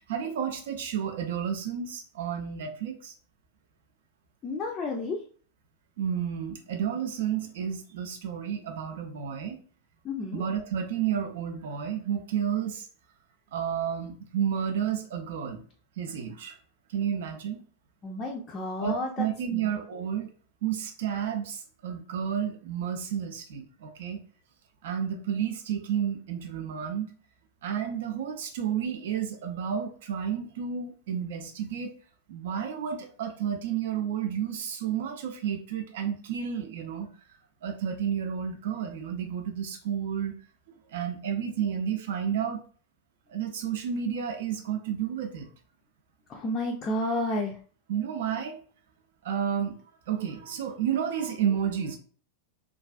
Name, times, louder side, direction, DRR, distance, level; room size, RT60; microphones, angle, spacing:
voice 1, 0.0-3.1 6.0-9.6 10.3-12.9 13.5-15.7 16.0-16.6 16.9-17.6 18.8-20.3 20.6-24.2 24.8-27.1 27.6-31.9 32.3-37.1 37.6-40.4 40.7-42.6 43.3-45.5 47.9-48.6 49.2-49.8 50.1-52.0, right 8 dB, 55° right, 4 dB, 0.5 m, -31 dB
voice 2, 4.4-5.2 10.0-10.4 18.0-19.7 46.3-47.6, left 2 dB, 25° left, -1 dB, 0.4 m, -31 dB
2.3 x 2.3 x 2.3 m, 0.43 s
figure-of-eight pair, 90°, 0 cm